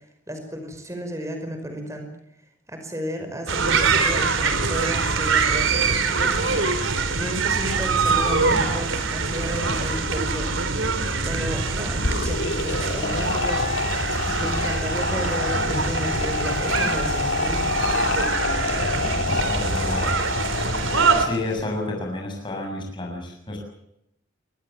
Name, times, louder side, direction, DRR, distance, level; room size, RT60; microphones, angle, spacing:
voice 1, 0.3-2.1 2.7-6.7 7.2-10.5 11.2-14.1 14.4-17.7, equal, 15° right, 6 dB, 5.2 m, -33 dB
sound 1, 3.5-21.3, right 4 dB, 80° right, 3.3 m, -24 dB
sound 2, 11.9-21.6, left 3 dB, 60° left, 2.8 m, -27 dB
voice 2, 19.3-20.1 21.2-23.6, left 2 dB, 25° left, 0 dB, 6.9 m, -30 dB
24.0 x 19.5 x 7.3 m, 0.80 s
head